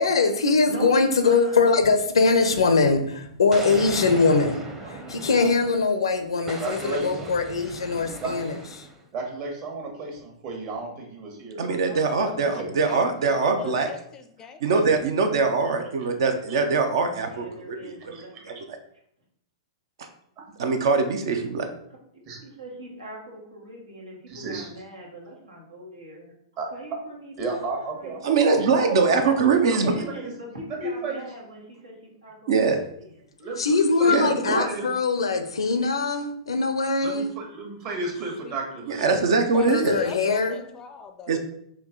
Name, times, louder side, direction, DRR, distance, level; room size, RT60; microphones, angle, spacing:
voice 1, 0.0-4.7 5.1-8.5 33.6-37.4 39.7-40.6, left 4 dB, 75° left, 7 dB, 0.5 m, -22 dB
voice 2, 0.6-1.7 4.7-5.6 11.9-12.9 17.2-18.5 22.4-26.3 26.7-27.3 27.9-28.3 29.6-33.3, right 1 dB, 90° right, -4 dB, 1.5 m, -41 dB
Explosion, 3.5-6.0 6.5-9.0, right 3 dB, 20° right, 0.8 m, -38 dB
voice 3, 6.6-7.3 8.2-8.3 9.1-11.9 12.3-12.7 18.1-18.2 20.4-20.5 22.3-22.4 24.3-24.7 26.6-26.7 27.4-29.3 30.0-30.3 30.7-31.3 33.4-34.9 37.0-39.0, right 3 dB, 45° right, 0 dB, 1.3 m, -33 dB
voice 4, 11.6-13.9 14.6-18.2 20.6-21.6 28.2-29.9 32.5-32.8 34.1-34.7 38.9-40.0 41.3-41.4, right 4 dB, 65° right, 6 dB, 0.6 m, -22 dB
voice 5, 12.9-14.9 38.4-38.5 39.0-39.1 39.5-41.4, left 6 dB, 25° left, 7 dB, 0.5 m, -39 dB
4.5 x 2.8 x 3.7 m, 0.70 s
figure-of-eight pair, 105°, 3 cm